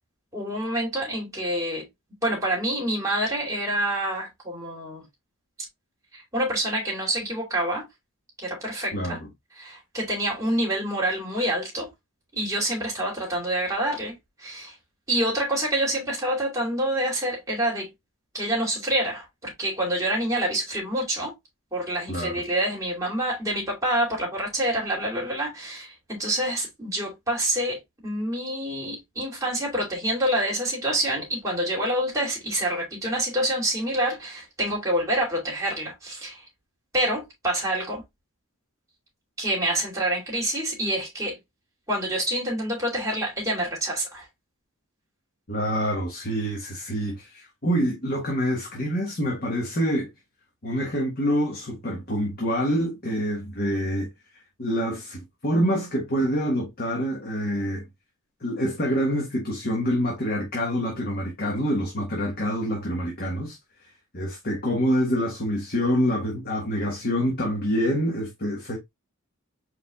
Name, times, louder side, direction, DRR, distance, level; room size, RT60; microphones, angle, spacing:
voice 1, 0.3-1.9 2.2-5.0 6.1-7.9 8.4-9.2 9.5-11.9 12.3-14.7 15.1-17.9 18.3-21.3 21.7-36.4 36.9-38.0 39.4-41.4 41.9-44.2, right 1 dB, 15° right, 2.6 m, -27 dB
voice 2, 45.5-50.1 50.6-54.1 54.6-57.8 58.4-63.6 64.1-68.8, equal, 45° left, 1.4 m, -26 dB
4.7 x 4.5 x 2.3 m
head